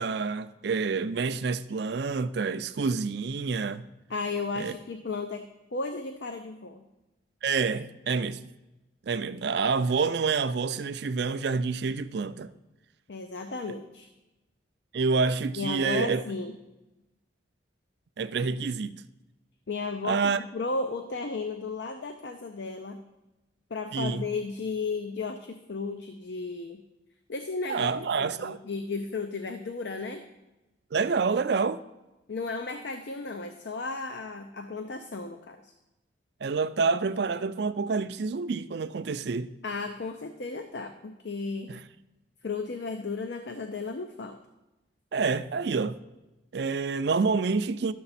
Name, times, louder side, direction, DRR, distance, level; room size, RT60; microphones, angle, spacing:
voice 1, 0.0-3.8 4.6-4.7 7.4-8.4 9.1-12.5 14.9-16.2 18.2-19.0 20.0-20.4 23.9-24.2 27.7-28.6 30.9-31.8 36.4-39.5 41.7-41.8 45.1-46.0 46.5-47.9, right 4 dB, 55° right, 0.4 m, -28 dB
voice 2, 4.1-6.8 13.1-14.1 15.6-16.5 19.7-23.0 23.7-26.8 27.3-30.2 32.3-35.7 39.6-41.8 42.4-44.4, left 3 dB, 60° left, 0.5 m, -34 dB
12.0 x 6.8 x 4.1 m
head